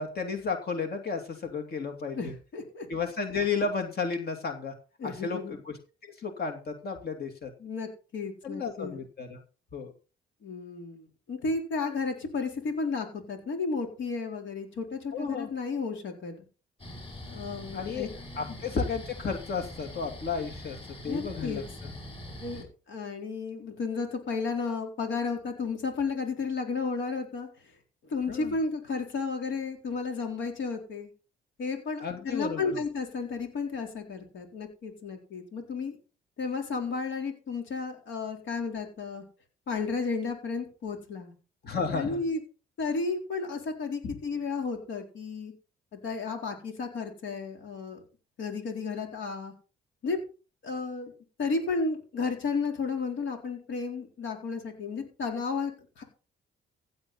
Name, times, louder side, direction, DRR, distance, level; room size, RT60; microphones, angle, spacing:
voice 1, 0.0-2.3 2.9-4.7 5.0-5.8 6.0-7.5 8.4-9.4 9.7-9.9 15.1-15.5 17.7-18.1 18.4-20.8 21.0-21.9 28.3-28.5 32.0-32.7 41.6-42.2, left 5 dB, 50° left, 5 dB, 2.7 m, -33 dB
voice 2, 2.2-2.9 5.0-5.5 7.6-9.0 10.4-16.4 17.3-18.1 21.1-21.6 22.4-27.5 28.1-31.1 31.6-36.0 36.4-39.2 39.7-41.3 41.9-42.4 42.8-45.5 45.9-48.0 48.4-49.5 50.0-50.2 50.6-51.1 51.4-55.7 56.0-56.1, left 4 dB, 70° left, 3 dB, 4.0 m, -33 dB
sound 1, 16.8-22.6, left 1 dB, 30° left, 6.2 m, -43 dB
15.5 x 8.0 x 4.2 m, 0.34 s
cardioid pair, 90°, 20 cm